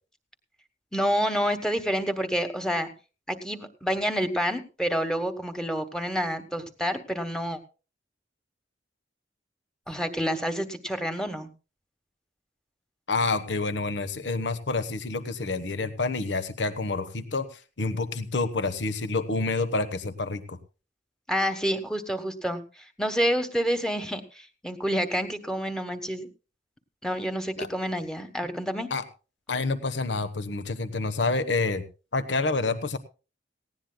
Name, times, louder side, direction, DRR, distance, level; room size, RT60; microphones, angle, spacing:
voice 1, 0.9-2.9 3.3-7.6 9.9-11.5 21.3-22.6 23.0-26.3 27.0-28.9, equal, 5° left, 8 dB, 1.2 m, -28 dB
voice 2, 13.1-20.6 27.6-27.7 28.9-29.0 29.5-31.8 32.1-33.0, left 3 dB, 75° left, 11 dB, 1.1 m, -28 dB
18.5 x 16.5 x 2.3 m, 0.33 s
head